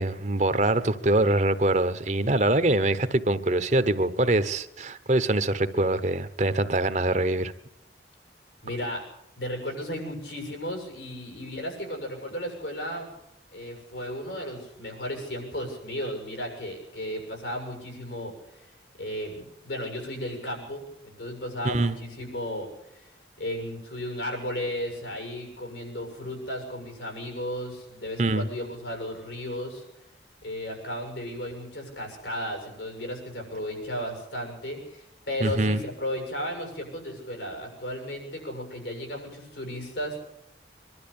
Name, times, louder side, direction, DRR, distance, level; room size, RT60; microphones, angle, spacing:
voice 1, 0.0-7.5 21.6-22.0 28.2-28.5 35.4-35.8, right 2 dB, 40° right, 11 dB, 1.0 m, -24 dB
voice 2, 8.6-9.0 9.4-13.1 13.5-29.8 30.4-40.2, equal, 80° left, 3 dB, 7.4 m, -34 dB
24.0 x 12.5 x 8.7 m, 0.84 s
head